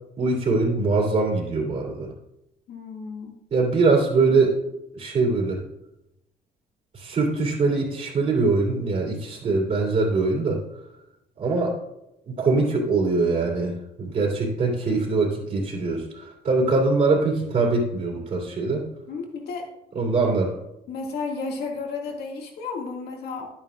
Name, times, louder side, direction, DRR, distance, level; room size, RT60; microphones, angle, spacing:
voice 1, 0.2-2.1 3.5-4.6 4.9-5.6 6.9-10.6 11.4-11.7 12.3-18.8 19.9-20.5, right 3 dB, 45° right, -4 dB, 2.7 m, -23 dB
voice 2, 2.7-3.4 19.1-19.7 19.9-20.3 20.9-23.5, left 4 dB, 70° left, 1 dB, 2.1 m, -33 dB
11.0 x 9.0 x 2.4 m, 0.86 s
cardioid pair, 110°, 17 cm